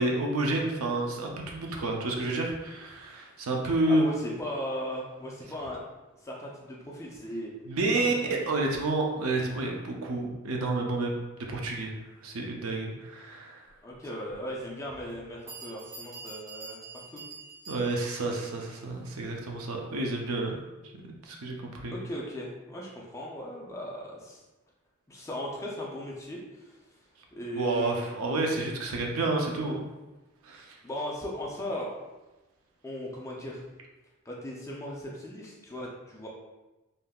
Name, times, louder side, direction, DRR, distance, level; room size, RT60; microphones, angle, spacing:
voice 1, 0.0-4.0 7.7-13.7 17.7-20.6 21.0-22.0 27.6-29.8 30.4-30.8, right 2 dB, 75° right, 1 dB, 0.5 m, -30 dB
voice 2, 3.9-5.8 6.2-7.5 8.2-8.5 13.8-17.2 21.9-24.4 25.1-26.8 27.3-28.0 30.8-32.1 32.8-33.6 34.3-36.3, equal, 15° left, -3 dB, 0.4 m, -37 dB
Bell, 15.1-15.2 15.5-18.3, right 3 dB, 40° right, 0.9 m, -45 dB
3.5 x 2.7 x 2.3 m, 1.1 s
head